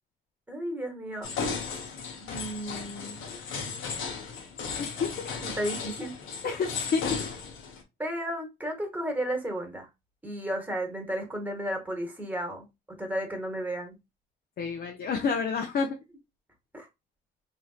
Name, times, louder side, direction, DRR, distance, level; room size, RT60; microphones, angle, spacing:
voice 1, 0.5-1.3 2.2-3.2 5.4-6.1 6.4-6.6 8.0-9.9 10.2-14.0 16.7-16.9, right 1 dB, 10° right, 1.1 m, -33 dB
sound 1, 1.2-7.8, left 5 dB, 80° left, 0.8 m, -35 dB
voice 2, 4.8-5.1 6.4-7.3 14.6-16.0, left 5 dB, 50° left, 0.6 m, -29 dB
3.2 x 2.6 x 2.3 m
cardioid pair, 90°, 20 cm